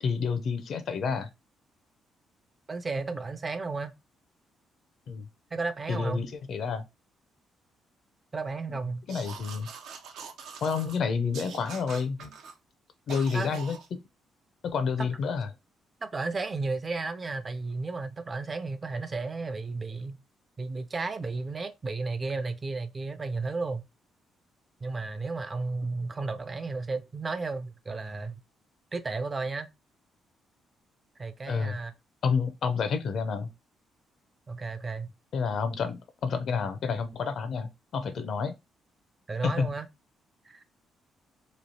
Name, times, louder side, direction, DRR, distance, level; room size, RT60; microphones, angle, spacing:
voice 1, 0.0-1.3 5.1-5.3 5.9-6.8 8.7-8.8 9.1-9.7 10.6-12.3 13.1-14.0 14.6-15.5 31.5-31.8 32.2-33.5 35.3-38.5 39.4-39.7, left 5 dB, 60° left, 0.5 m, -29 dB
voice 2, 2.7-3.9 5.5-6.2 8.3-9.0 13.3-13.5 15.0-15.1 16.0-20.2 20.6-23.8 24.8-28.4 28.9-29.7 31.2-31.9 34.5-35.1 39.3-39.9 40.4-40.6, right 3 dB, 30° right, 0.4 m, -33 dB
sound 1, 9.1-11.0 11.3-12.5 13.1-13.9, right 6 dB, 80° right, 0.6 m, -43 dB
3.1 x 2.4 x 2.6 m
cardioid pair, 90°, 0 cm